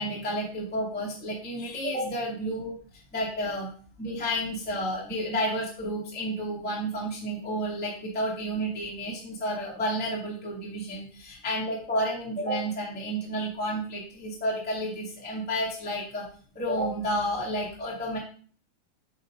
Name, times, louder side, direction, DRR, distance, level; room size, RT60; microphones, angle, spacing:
voice 1, 0.0-2.7 3.1-3.7 4.0-16.3 16.5-18.2, equal, 5° left, -5 dB, 1.3 m, -31 dB
9.1 x 6.0 x 2.6 m, 0.43 s
omnidirectional pair, 4.3 m